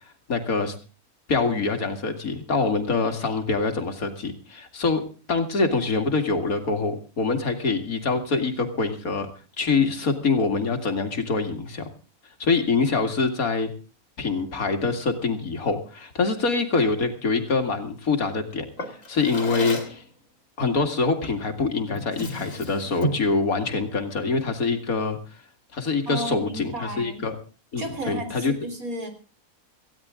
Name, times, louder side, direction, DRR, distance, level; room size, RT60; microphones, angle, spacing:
voice 1, 0.3-0.8 1.3-5.0 5.3-9.3 9.6-11.9 12.4-13.7 14.2-20.0 20.6-25.2 25.7-27.4 27.7-28.5, left 4 dB, 90° left, 6 dB, 2.6 m, -25 dB
Drawer open or close, 18.8-20.0 21.2-21.5 21.9-23.3, equal, 65° left, 2.7 m, -32 dB
voice 2, 26.1-27.3 27.8-29.1, right 1 dB, 85° right, 6 dB, 4.0 m, -33 dB
18.5 x 15.5 x 3.7 m, 0.36 s
omnidirectional pair, 1.5 m